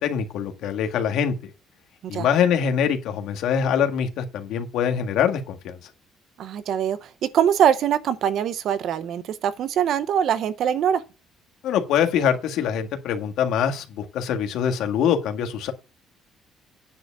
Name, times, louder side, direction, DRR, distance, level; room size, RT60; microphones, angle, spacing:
voice 1, 0.0-1.5 2.1-5.8 11.6-15.7, left 8 dB, 70° left, 1.7 m, -24 dB
voice 2, 6.4-11.0, right 9 dB, 50° right, 0.8 m, -23 dB
9.5 x 5.0 x 6.8 m
cardioid pair, 180°, 0 cm